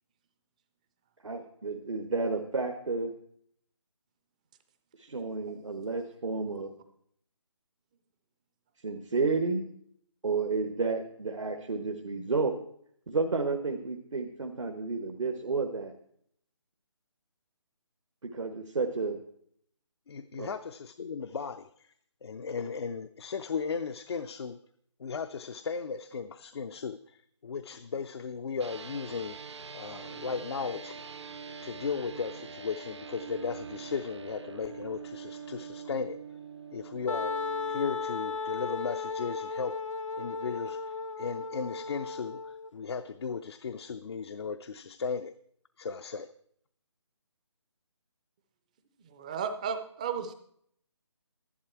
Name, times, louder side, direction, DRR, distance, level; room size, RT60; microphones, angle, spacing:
voice 1, 1.2-3.1 5.0-6.7 8.8-9.7 10.2-12.5 13.1-15.9 18.3-19.2 20.4-20.5, right 4 dB, 80° right, 3 dB, 1.2 m, -31 dB
voice 2, 20.1-21.9 22.2-24.6 25.0-29.4 29.7-31.0 31.6-36.2 36.7-37.4 37.7-39.8 40.2-45.3 45.8-46.3, left 5 dB, 60° left, 10 dB, 0.5 m, -36 dB
sound 1, 28.6-38.1, right 6 dB, 65° right, 0.7 m, -44 dB
Wind instrument woodwind instrument, 37.1-42.7, left 4 dB, 90° left, 0.8 m, -35 dB
voice 3, 49.1-50.3, right 7 dB, 15° right, 9 dB, 0.5 m, -34 dB
11.0 x 11.0 x 4.5 m, 0.67 s
figure-of-eight pair, 160°, 16 cm